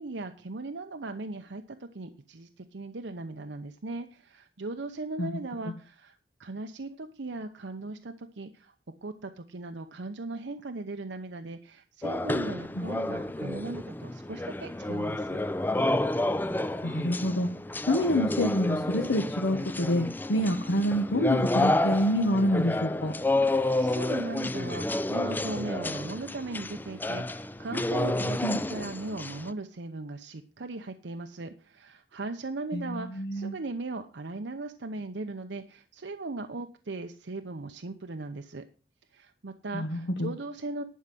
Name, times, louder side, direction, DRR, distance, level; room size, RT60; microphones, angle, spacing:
voice 1, 0.0-15.4 23.4-38.6 39.1-40.8, right 2 dB, 70° right, 7 dB, 0.8 m, -38 dB
sound 1, 12.0-29.5, left 2 dB, 10° left, 0.4 m, -30 dB
voice 2, 16.8-17.5 17.9-23.1 28.4-28.6 32.7-33.6 39.7-40.3, equal, 75° left, 3 dB, 1.2 m, -27 dB
11.0 x 5.5 x 7.6 m, 0.38 s
head